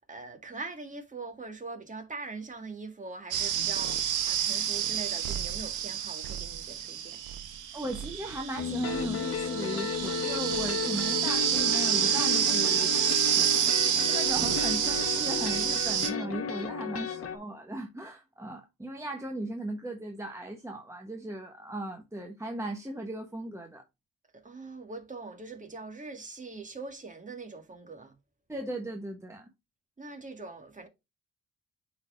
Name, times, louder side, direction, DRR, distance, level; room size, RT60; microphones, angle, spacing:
voice 1, 0.0-7.2 24.3-28.1 30.0-30.9, right 3 dB, 25° right, 1.8 m, -42 dB
sound 1, 3.3-16.1, right 9 dB, 85° right, 1.1 m, -29 dB
voice 2, 7.7-13.0 13.4-13.5 13.9-23.8 28.5-29.5, right 1 dB, 10° right, 1.0 m, -37 dB
sound 2, 8.6-17.4, left 6 dB, 50° left, 1.2 m, -34 dB
9.4 x 4.1 x 2.5 m
cardioid pair, 90°, 30 cm